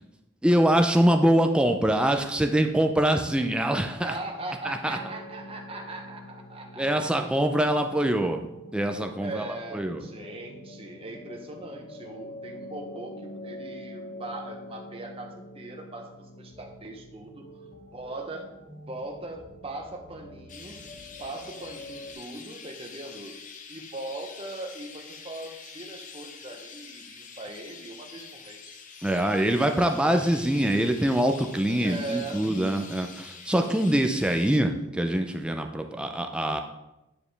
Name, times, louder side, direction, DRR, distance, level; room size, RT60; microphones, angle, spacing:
voice 1, 0.4-4.1 4.6-5.0 6.8-8.5 8.7-9.4 9.7-10.0 29.0-36.6, right 1 dB, 5° right, 5 dB, 0.4 m, -24 dB
voice 2, 4.0-7.1 9.2-17.4 17.9-18.5 18.9-20.8 21.2-23.4 23.7-28.8 31.7-32.5, right 2 dB, 25° right, 2 dB, 0.8 m, -39 dB
sound 1, 4.9-22.1, left 1 dB, 55° left, 1.2 m, -45 dB
Chirp tweet, 20.5-34.6, left 5 dB, 35° left, 0.6 m, -46 dB
9.4 x 5.0 x 3.3 m, 0.92 s
head